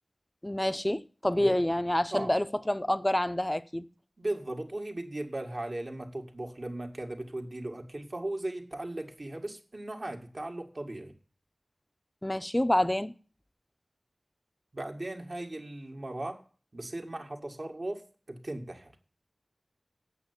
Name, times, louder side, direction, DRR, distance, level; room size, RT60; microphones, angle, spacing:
voice 1, 0.4-3.9 12.2-13.1, left 1 dB, 20° left, 0.7 m, -27 dB
voice 2, 4.2-11.1 14.7-16.4 16.7-18.9, right 1 dB, 50° right, 1.9 m, -37 dB
8.3 x 6.9 x 8.1 m
wide cardioid pair, 45°, 0 cm